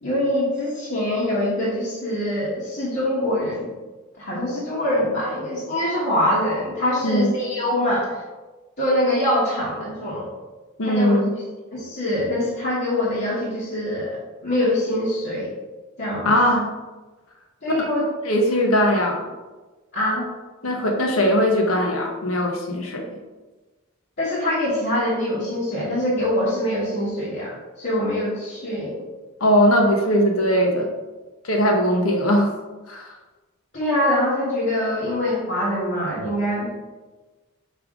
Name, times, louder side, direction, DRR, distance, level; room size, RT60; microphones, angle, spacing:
voice 1, 0.0-3.7 4.1-8.2 8.8-10.3 10.8-11.2 11.7-14.2 14.4-15.5 16.0-16.3 17.6-18.0 19.9-20.3 24.2-29.0 33.7-36.7, left 1 dB, 55° left, -8 dB, 1.4 m, -24 dB
voice 2, 7.0-7.4 10.8-11.4 16.2-16.7 18.2-19.2 20.6-23.1 29.4-30.9 31.4-32.5 32.9-33.1, equal, 85° left, 1 dB, 1.2 m, -20 dB
5.6 x 5.0 x 3.7 m, 1.2 s
head